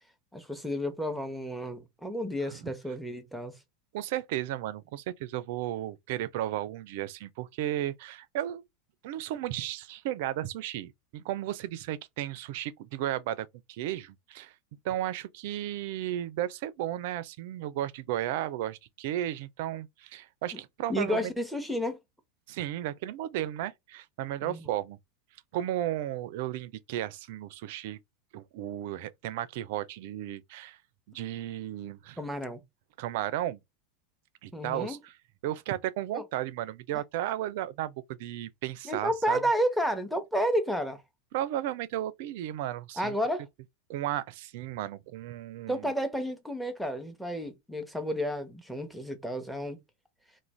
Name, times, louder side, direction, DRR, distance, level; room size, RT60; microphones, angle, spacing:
voice 1, 0.3-3.6 20.5-20.6 20.9-22.0 24.4-24.7 32.2-32.6 34.5-35.0 36.1-36.2 38.8-41.0 43.0-43.5 45.7-49.8, equal, ahead, 0.8 m, -31 dB
voice 2, 3.9-8.6 9.0-14.5 14.8-21.3 22.5-25.0 25.5-28.0 28.3-30.8 31.1-32.2 33.0-33.6 34.4-35.1 35.4-39.4 41.3-43.1 43.9-45.9, right 13 dB, 65° right, 0.4 m, -34 dB
2.5 x 2.1 x 3.1 m
hypercardioid pair, 100°, 0 cm